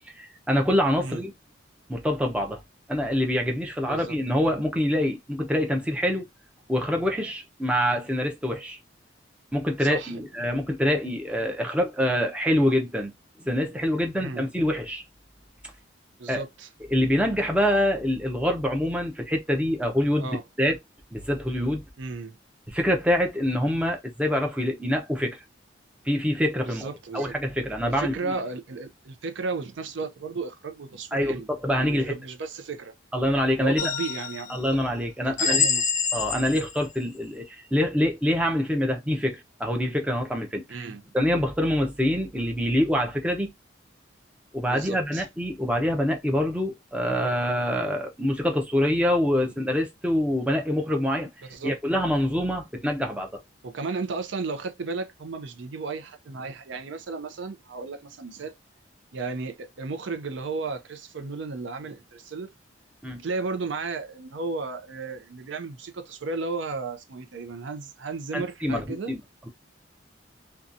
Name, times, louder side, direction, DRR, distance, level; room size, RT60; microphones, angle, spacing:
voice 1, 0.1-1.3 1.9-2.6 2.9-6.3 6.7-8.8 9.5-13.1 13.4-15.0 16.3-16.4 16.9-20.3 20.6-20.8 21.1-21.8 22.7-25.4 26.0-26.9 27.1-28.3 31.1-32.1 33.1-33.9 34.5-35.7 36.1-40.9 41.1-43.5 44.5-51.3 51.6-53.4 63.0-63.2 68.3-69.2, equal, 5° right, 0.5 m, -25 dB
voice 2, 9.8-10.2 14.2-14.5 16.2-16.7 20.2-20.4 22.0-22.4 26.6-27.3 27.8-31.5 31.8-32.9 33.6-34.6 35.3-35.8 36.3-36.5 40.7-41.0 44.7-45.3 51.5-51.7 53.6-58.5 59.1-62.5 63.2-69.1, right 4 dB, 75° right, 0.5 m, -34 dB
sound 1, 33.8-34.6 35.4-36.8, left 6 dB, 40° left, 0.6 m, -26 dB
2.7 x 2.2 x 2.5 m
head